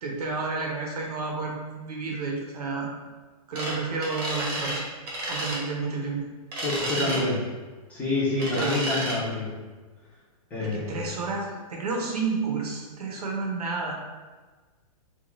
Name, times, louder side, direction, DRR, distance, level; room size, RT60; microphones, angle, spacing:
voice 1, 0.0-2.9 3.5-4.8 5.3-6.3 7.0-7.2 8.5-8.7 10.6-14.0, right 4 dB, 90° right, 0 dB, 0.8 m, -31 dB
sound 1, 3.5-3.7 4.0-4.8 5.1-5.6 6.5-7.2 8.4-9.2, right 1 dB, 35° right, 0.9 m, -31 dB
voice 2, 6.5-7.4 7.9-9.5 10.5-11.1, left 2 dB, 10° left, -8 dB, 0.5 m, -27 dB
2.6 x 2.3 x 3.1 m, 1.3 s
hypercardioid pair, 165°, 19 cm